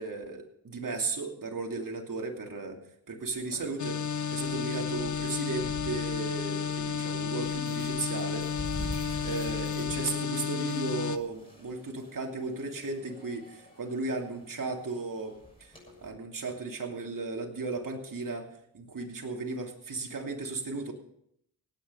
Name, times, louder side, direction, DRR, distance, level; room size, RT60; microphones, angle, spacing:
voice 1, 0.0-2.8 3.1-4.0 4.3-8.5 8.8-15.3 15.6-15.7 16.0-18.5 18.7-20.9, right 3 dB, 55° right, 2 dB, 2.8 m, -35 dB
sound 1, 3.3-16.1, left 1 dB, 15° left, 7.0 m, -46 dB
sound 2, 3.8-11.2, left 7 dB, 50° left, 0.7 m, -32 dB
17.0 x 9.3 x 5.5 m, 0.74 s
cardioid pair, 75°, 37 cm